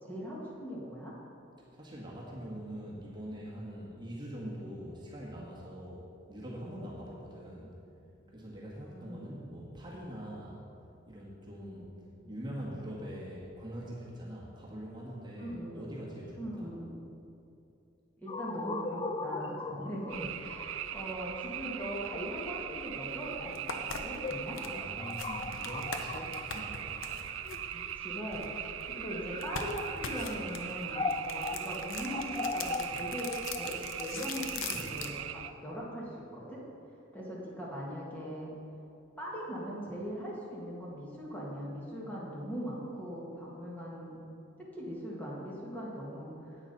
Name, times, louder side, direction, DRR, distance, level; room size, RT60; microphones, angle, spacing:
voice 1, 0.0-1.1 8.2-8.3 8.9-9.4 15.4-15.9 16.4-17.0 18.2-24.6 27.7-28.4 28.9-35.2 35.6-36.6 37.1-38.5 39.2-44.2 44.7-46.3, equal, 10° left, -5 dB, 1.6 m, -40 dB
voice 2, 1.7-7.7 8.3-10.6 11.1-11.9 12.2-16.7 24.6-27.2, equal, 20° right, -5 dB, 1.5 m, -43 dB
sound 1, 18.3-28.1 28.9-35.8, left 3 dB, 25° left, 0.3 m, -40 dB
sound 2, 20.1-35.5, right 10 dB, 80° right, 0.4 m, -40 dB
sound 3, 23.1-23.2 23.5-28.9 29.4-35.2, left 5 dB, 90° left, 0.7 m, -42 dB
10.5 x 8.6 x 4.1 m, 2.7 s
head